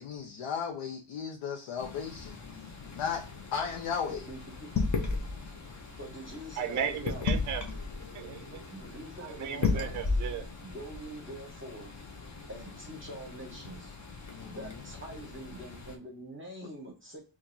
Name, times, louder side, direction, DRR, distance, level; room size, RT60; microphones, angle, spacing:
voice 1, 0.0-2.4 2.9-3.2 3.5-4.3 14.3-14.7, left 6 dB, 85° left, 0.7 m, -35 dB
sound 1, 1.8-16.0, left 4 dB, 35° left, 0.7 m, -36 dB
voice 2, 4.1-4.7 6.0-7.3 8.7-9.9 10.6-11.9 12.5-14.0 14.4-17.2, right 1 dB, 25° right, 0.9 m, -44 dB
voice 3, 6.6-7.6 8.1-8.6 9.2-10.5, right 8 dB, 40° right, 0.4 m, -35 dB
4.6 x 2.4 x 2.6 m
wide cardioid pair, 155°, 49 cm